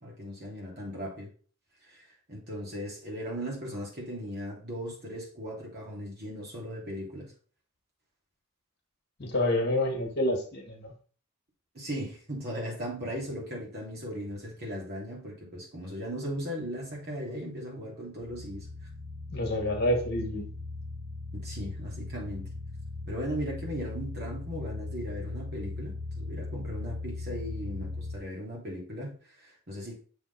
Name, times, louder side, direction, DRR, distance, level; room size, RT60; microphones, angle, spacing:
voice 1, 0.0-1.3 1.8-7.3 11.7-18.7 21.3-22.5 23.1-30.0, equal, 45° right, -3 dB, 2.9 m, -38 dB
voice 2, 9.2-10.9 19.3-20.4, left 1 dB, 50° left, 2 dB, 1.8 m, -28 dB
sound 1, 18.2-28.2, left 2 dB, 15° left, 1.9 m, -38 dB
6.8 x 4.2 x 4.1 m, 0.41 s
head